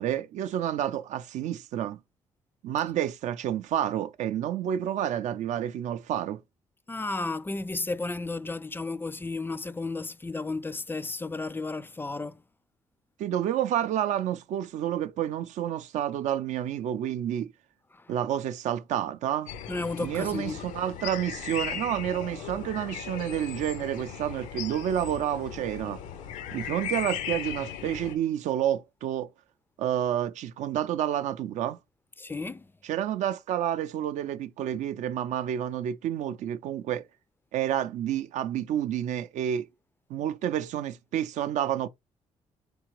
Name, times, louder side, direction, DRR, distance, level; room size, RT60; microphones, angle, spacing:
voice 1, 0.0-2.0 2.6-6.4 13.2-17.5 18.1-19.5 20.0-26.0 26.5-29.3 29.8-31.8 32.8-37.1 37.5-39.7 40.1-41.9, right 10 dB, 75° right, 0.4 m, -29 dB
voice 2, 6.9-12.4 17.9-18.1 19.7-20.6 32.2-32.7, left 3 dB, 15° left, 0.3 m, -33 dB
sound 1, 19.5-28.1, left 8 dB, 85° left, 0.6 m, -37 dB
3.8 x 3.4 x 3.0 m
supercardioid pair, 70°, 13 cm